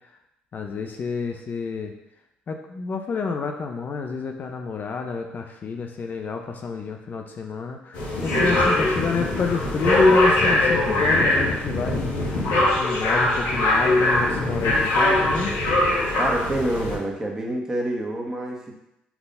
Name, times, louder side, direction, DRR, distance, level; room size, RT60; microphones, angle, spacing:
voice 1, 0.5-1.9 2.5-15.6, left 5 dB, 45° left, 4 dB, 0.8 m, -29 dB
sound 1, 7.9-17.0, left 2 dB, 80° left, 2.0 m, -21 dB
voice 2, 8.3-8.9 16.1-18.7, right 1 dB, 15° right, -1 dB, 2.0 m, -28 dB
5.9 x 4.0 x 5.5 m, 0.83 s
hypercardioid pair, 60°, 4 cm